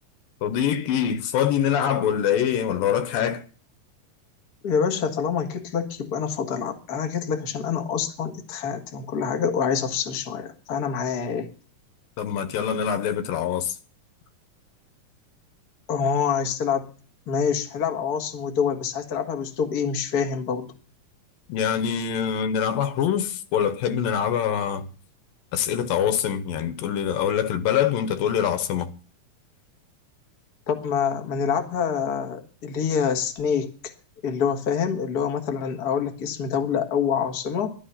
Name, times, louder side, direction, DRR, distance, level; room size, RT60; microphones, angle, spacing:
voice 1, 0.4-3.4 12.2-13.8 21.5-24.9 25.5-28.9, left 9 dB, 80° left, 2.8 m, -24 dB
voice 2, 4.6-11.5 15.9-16.9 17.3-20.7 30.7-33.7 34.2-37.7, left 7 dB, 45° left, 1.3 m, -26 dB
15.0 x 12.0 x 5.7 m
omnidirectional pair, 4.1 m